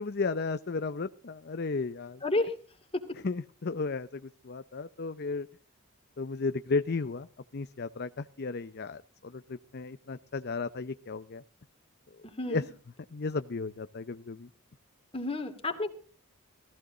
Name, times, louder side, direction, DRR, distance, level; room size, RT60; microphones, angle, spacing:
voice 1, 0.0-2.2 3.2-5.5 6.2-7.3 7.5-11.4 12.5-12.6 13.1-14.5, left 4 dB, 45° left, 12 dB, 0.6 m, -34 dB
voice 2, 2.2-2.5 2.9-3.0 12.2-12.7 15.1-15.9, left 2 dB, 25° left, 6 dB, 2.5 m, -31 dB
18.0 x 15.0 x 3.8 m, 0.39 s
head